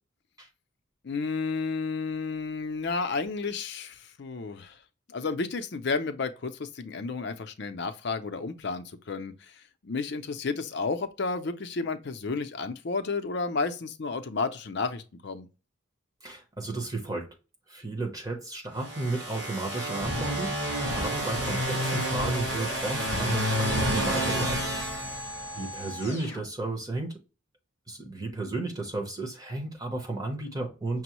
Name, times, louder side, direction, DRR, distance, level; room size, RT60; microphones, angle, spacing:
voice 1, 1.0-4.8 5.1-15.5, left 4 dB, 50° left, 0.5 m, -32 dB
voice 2, 16.2-17.3 17.7-25.0 25.5-27.2 27.9-31.0, right 2 dB, 15° right, 0.8 m, -33 dB
sound 1, 18.8-25.7, equal, 55° right, 1.8 m, -29 dB
sound 2, 21.3-26.4, left 1 dB, 10° left, 0.6 m, -41 dB
6.0 x 2.1 x 3.0 m
head